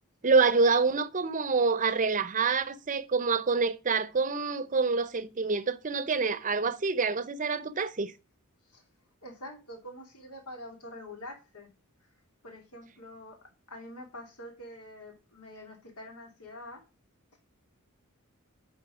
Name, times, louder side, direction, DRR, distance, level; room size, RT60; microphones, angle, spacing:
voice 1, 0.2-8.1, right 4 dB, 35° right, 0.6 m, -26 dB
voice 2, 9.2-11.7 12.4-13.4 13.7-16.8, left 1 dB, 85° left, 2.6 m, -45 dB
10.5 x 4.0 x 4.8 m
head